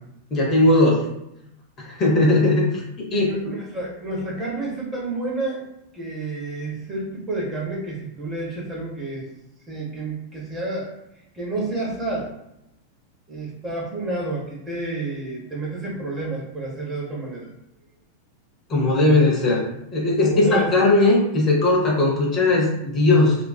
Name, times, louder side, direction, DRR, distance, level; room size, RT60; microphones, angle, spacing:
voice 1, 0.3-1.1 1.8-3.3 18.7-19.6 19.9-23.4, left 2 dB, 30° left, -4 dB, 0.7 m, -18 dB
voice 2, 3.1-5.6 5.9-9.3 9.7-10.9 11.3-12.3 13.3-17.5 20.2-20.8, right 2 dB, 20° right, -4 dB, 0.8 m, -30 dB
2.4 x 2.2 x 2.3 m, 0.83 s
figure-of-eight pair, 90°, 0 cm